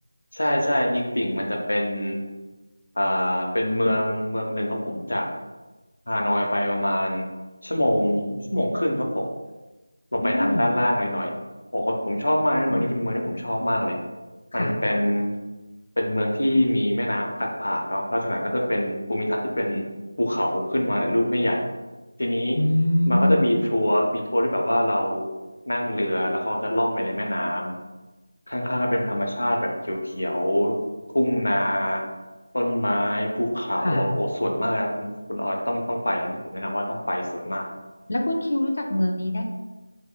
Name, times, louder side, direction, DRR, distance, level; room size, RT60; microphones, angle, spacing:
voice 1, 0.3-2.2 3.0-5.2 6.1-7.3 7.6-9.3 10.1-11.3 11.7-14.0 14.5-15.3 16.0-19.9 20.2-21.6 22.2-22.6 23.1-25.3 25.7-27.7 28.5-30.8 31.1-32.0 32.5-37.6, left 1 dB, 90° left, 0 dB, 0.7 m, -24 dB
voice 2, 10.2-10.7 12.6-12.9 14.5-14.8 22.6-23.5 33.8-34.1 38.1-39.5, left 1 dB, 50° left, 3 dB, 0.4 m, -23 dB
3.7 x 2.9 x 2.3 m, 1.2 s
figure-of-eight pair, 175°, 0 cm